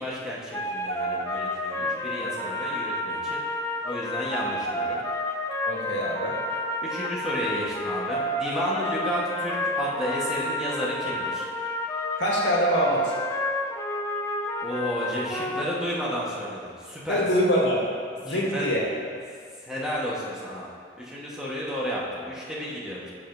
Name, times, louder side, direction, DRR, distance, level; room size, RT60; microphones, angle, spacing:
voice 1, 0.0-3.4 3.8-5.0 6.8-11.5 14.6-17.2 18.3-18.7 19.6-20.7 21.0-23.1, equal, 5° right, -7 dB, 1.1 m, -32 dB
sound 1, 0.5-15.6, left 1 dB, 15° left, 0.4 m, -30 dB
voice 2, 5.6-6.4 12.2-13.1 17.1-17.9 18.2-18.9, equal, 80° left, -4 dB, 1.6 m, -24 dB
15.0 x 5.0 x 2.6 m, 2.1 s
head